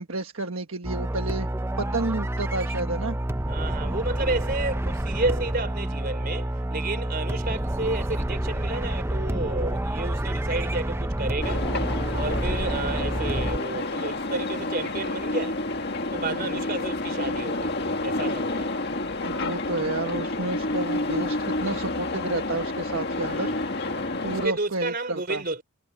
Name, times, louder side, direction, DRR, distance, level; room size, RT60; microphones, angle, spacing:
voice 1, 0.0-1.5 1.8-3.2 16.2-16.5 19.2-23.5 24.2-25.4, right 2 dB, 60° right, 1.5 m, -31 dB
sound 1, 0.8-13.6, right 1 dB, 10° right, 0.6 m, -28 dB
voice 2, 3.5-11.7 12.1-15.6 16.1-17.8 18.0-18.7 23.2-25.6, right 2 dB, 40° right, 4.0 m, -31 dB
sound 2, 11.4-24.5, left 2 dB, 45° left, 1.9 m, -29 dB
head